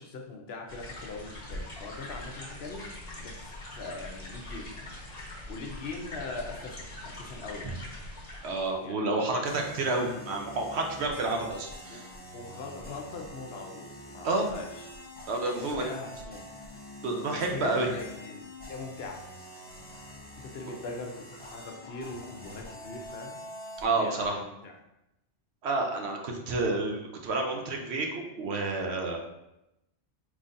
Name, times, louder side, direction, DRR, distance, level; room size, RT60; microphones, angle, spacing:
voice 1, 0.0-2.9 3.2-4.7 5.5-7.8 8.8-9.4 11.9-14.9 15.6-16.4 17.3-19.3 20.4-23.4 24.0-24.8, left 3 dB, 65° left, 2 dB, 0.9 m, -41 dB
sound 1, 0.7-8.8, left 1 dB, 35° left, 1.4 m, -42 dB
voice 2, 8.4-12.1 14.2-14.5 15.3-15.8 17.0-17.9 23.8-24.4 25.6-29.2, right 3 dB, 70° right, 2 dB, 0.9 m, -29 dB
sound 2, 9.4-24.3, left 1 dB, 10° left, 0.8 m, -45 dB
5.4 x 3.1 x 2.6 m, 0.88 s
omnidirectional pair, 1.2 m